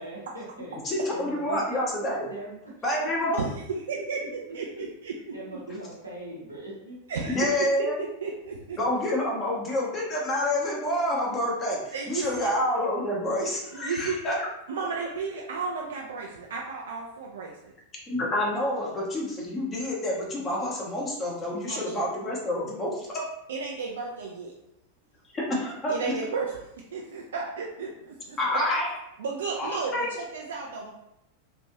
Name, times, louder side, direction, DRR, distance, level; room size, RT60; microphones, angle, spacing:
voice 1, 0.0-0.8 1.1-1.8 2.1-2.7 3.0-3.3 3.7-3.8 4.2-4.3 5.3-7.0, right 1 dB, 85° right, -7 dB, 1.1 m, -40 dB
voice 2, 0.8-2.3 2.8-3.4 7.3-8.0 8.8-14.5 18.1-23.3 25.3-26.1 28.4-28.9 29.5-30.1, left 1 dB, 25° left, -3 dB, 0.9 m, -28 dB
voice 3, 3.9-5.1 7.1-7.4 7.8-8.8 11.9-12.5 13.7-14.2 14.7-17.7 21.7-22.0 23.5-24.5 25.9-28.6 29.2-30.9, right 4 dB, 65° right, -1 dB, 0.4 m, -33 dB
3.0 x 2.5 x 2.7 m, 0.84 s
figure-of-eight pair, 90°, 0 cm